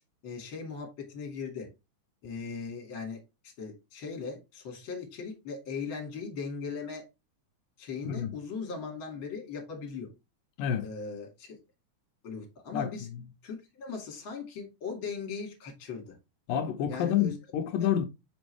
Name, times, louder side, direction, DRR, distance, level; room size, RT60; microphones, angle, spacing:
voice 1, 0.2-1.7 2.2-7.0 7.8-10.1 10.8-11.6 12.2-13.1 13.4-16.1 16.9-17.4 17.8-17.9, left 5 dB, 40° left, 2.7 m, -39 dB
voice 2, 12.7-13.3 16.5-18.1, left 9 dB, 85° left, 2.5 m, -29 dB
5.9 x 5.2 x 3.4 m
omnidirectional pair, 3.9 m